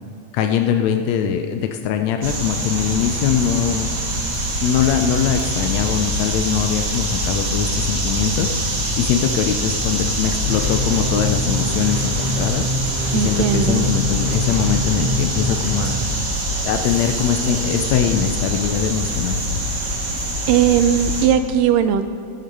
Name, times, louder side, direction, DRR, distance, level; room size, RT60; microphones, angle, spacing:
voice 1, 0.3-3.9 4.6-8.5 9.0-12.7 13.1-16.0 16.6-19.4, left 8 dB, 80° left, 6 dB, 1.5 m, -21 dB
sound 1, 2.2-21.3, equal, 35° right, 2.0 m, -24 dB
sound 2, 10.4-15.7, left 2 dB, 15° right, 2.1 m, -26 dB
voice 2, 13.1-13.9 20.5-22.0, right 9 dB, 85° right, 9 dB, 2.2 m, -18 dB
17.5 x 8.3 x 5.4 m, 2.6 s
omnidirectional pair, 3.9 m